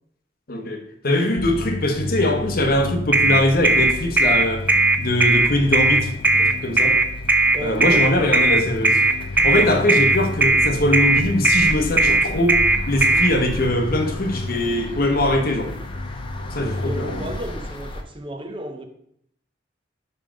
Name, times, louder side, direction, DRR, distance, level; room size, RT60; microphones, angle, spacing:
voice 1, 0.5-4.7 5.0-6.1 6.4-7.0 7.6-9.0 9.3-15.7 16.5-17.3, left 1 dB, 50° left, 0.9 m, -22 dB
sound 1, 1.4-17.4, left 2 dB, 90° left, 0.5 m, -32 dB
sound 2, 3.1-13.3, right 3 dB, 10° right, 0.4 m, -17 dB
sound 3, 3.2-18.0, left 1 dB, 30° left, 0.7 m, -36 dB
voice 2, 7.5-8.4 16.8-18.8, right 1 dB, 30° right, 0.7 m, -32 dB
5.5 x 5.2 x 5.0 m
head